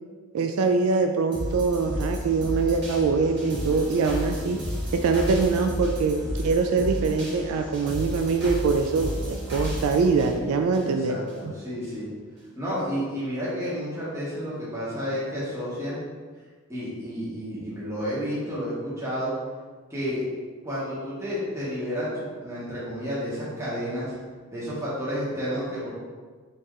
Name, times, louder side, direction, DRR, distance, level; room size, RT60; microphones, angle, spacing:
voice 1, 0.3-4.6 4.9-11.2 11.4-11.5, right 4 dB, 80° right, 5 dB, 0.3 m, -23 dB
sound 1, 1.3-11.4 11.8-11.9, equal, 50° right, 1.4 m, -32 dB
voice 2, 10.8-12.1 12.6-16.0 16.7-19.3 19.9-20.2 20.6-24.1 24.5-25.9, equal, 15° right, -9 dB, 1.1 m, -31 dB
4.3 x 3.2 x 3.6 m, 1.5 s
head